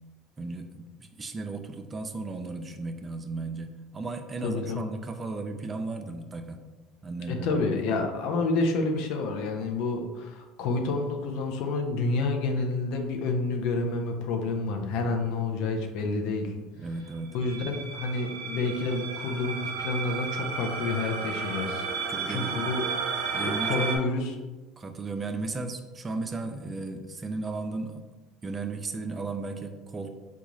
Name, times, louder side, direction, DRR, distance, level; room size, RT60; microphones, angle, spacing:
voice 1, 0.4-6.6 7.0-7.6 16.8-17.4 22.1-22.6 23.3-23.8 24.8-28.0 28.4-30.1, right 3 dB, 25° right, 6 dB, 0.4 m, -35 dB
voice 2, 4.4-4.8 7.3-16.5 17.3-21.8 22.3-22.8 23.3-24.4, left 3 dB, 70° left, 4 dB, 0.6 m, -29 dB
sound 1, 17.3-24.0, right 5 dB, 85° right, 0.5 m, -33 dB
3.9 x 2.3 x 3.0 m, 1.2 s
supercardioid pair, 100°, 0 cm